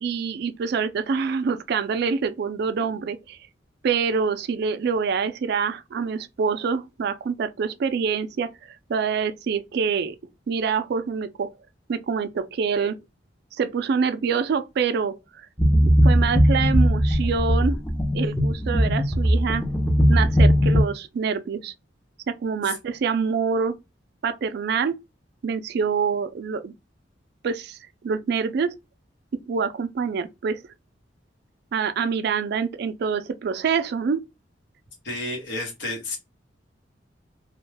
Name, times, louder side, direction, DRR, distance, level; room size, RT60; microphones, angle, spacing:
voice 1, 0.0-3.4 3.8-8.5 8.9-10.2 10.5-11.5 11.9-13.0 13.6-15.2 15.8-17.8 18.1-19.6 20.1-21.7 22.3-23.8 24.2-25.0 25.4-26.7 27.4-27.8 28.0-28.8 29.3-30.6 31.7-34.2, right 5 dB, 60° right, 0.3 m, -26 dB
sound 1, 15.6-20.8, equal, 5° left, 0.5 m, -19 dB
voice 2, 35.0-36.2, left 2 dB, 85° left, 1.0 m, -31 dB
2.4 x 2.2 x 3.2 m
head